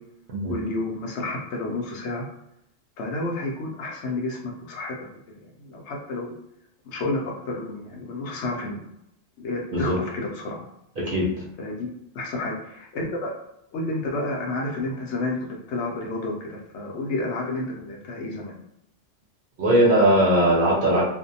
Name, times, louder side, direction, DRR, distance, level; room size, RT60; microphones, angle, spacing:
voice 1, 0.5-2.2 3.0-5.1 5.3-6.4 6.8-8.8 9.4-10.6 11.6-13.3 13.7-15.4 15.7-18.6, left 2 dB, 70° left, 0 dB, 0.8 m, -30 dB
voice 2, 11.0-11.3 19.6-21.0, right 1 dB, 60° right, -4 dB, 0.6 m, -19 dB
2.5 x 2.1 x 2.7 m, 0.81 s
omnidirectional pair, 1.3 m